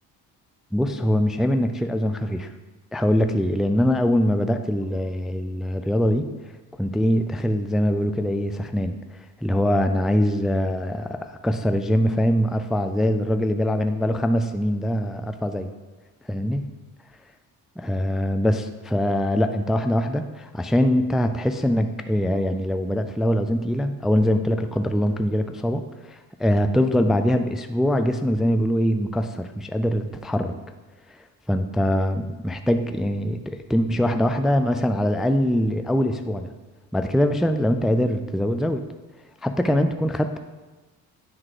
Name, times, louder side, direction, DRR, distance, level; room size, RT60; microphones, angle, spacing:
voice 1, 0.7-2.5 2.9-6.3 6.8-15.7 16.3-16.7 17.8-30.5 31.5-36.5 36.9-38.9 39.4-40.4, equal, ahead, 7 dB, 0.4 m, -23 dB
9.7 x 3.6 x 4.9 m, 1.2 s
supercardioid pair, 65°, 42 cm